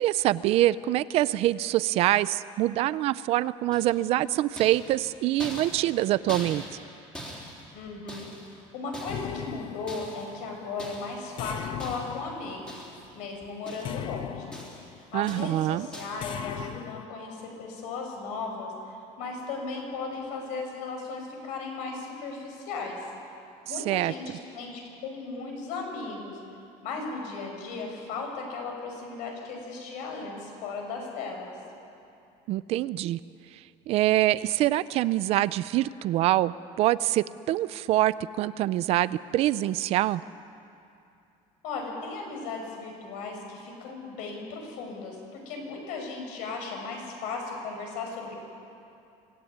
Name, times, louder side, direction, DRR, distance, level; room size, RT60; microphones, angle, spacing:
voice 1, 0.0-6.6 15.1-15.9 23.9-24.4 32.5-33.2 33.5-40.2, right 15 dB, 45° right, 17 dB, 0.5 m, -25 dB
sound 1, 3.7-4.2 4.6-6.9 7.1-8.6 8.9-9.5 9.9-10.4 10.8-11.2 11.8-12.3 12.7-13.2 13.4-14.1 14.5-14.9 15.3-15.6 15.9-16.3, equal, 5° left, 3.5 m, -42 dB
voice 2, 7.7-12.8 13.1-14.6 14.9-23.0 23.7-26.4 26.8-31.5 41.6-48.4, left 4 dB, 70° left, 2 dB, 6.1 m, -36 dB
sound 2, 9.1-10.4 11.4-13.1 13.8-15.0 16.2-17.1, left 12 dB, 35° left, 0.5 m, -38 dB
25.5 x 17.0 x 9.5 m, 2.6 s
cardioid pair, 180°, 14 cm